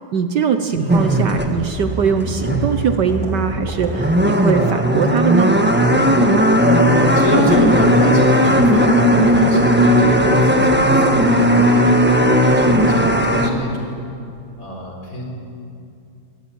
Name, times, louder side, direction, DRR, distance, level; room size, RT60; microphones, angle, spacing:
voice 1, 0.1-5.6, right 7 dB, 60° right, 8 dB, 1.4 m, -21 dB
voice 2, 0.7-1.1 6.6-13.9 14.6-15.2, left 1 dB, 40° left, 1 dB, 4.7 m, -26 dB
sound 1, 0.9-13.5, equal, 5° right, 1.1 m, -16 dB
sound 2, 3.1-3.3 3.7-3.9 4.3-4.6 5.0-5.2 5.7-5.9 6.3-6.5 6.9-7.1 7.5-7.7 8.1-8.3 8.7-8.8 9.2-9.5 9.8-10.0 10.3-10.5 10.9-11.1 11.4-11.6 12.0-12.2 12.5-12.7 13.1-13.7 14.1-14.4, right 3 dB, 90° right, 4.1 m, -36 dB
24.0 x 19.0 x 9.3 m, 2.5 s
omnidirectional pair, 2.3 m